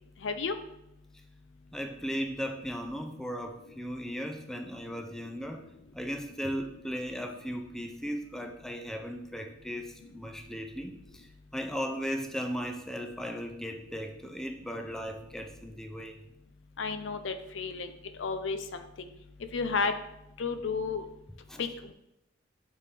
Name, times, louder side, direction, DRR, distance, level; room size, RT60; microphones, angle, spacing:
voice 1, 0.2-0.5 16.8-17.9 18.2-19.1 19.5-19.9 20.4-21.0 21.6-21.7, left 4 dB, 70° left, 9 dB, 0.5 m, -32 dB
voice 2, 1.7-5.7 5.9-16.2 21.5-21.7, equal, 5° left, 4 dB, 0.5 m, -37 dB
9.0 x 3.6 x 3.4 m, 0.84 s
head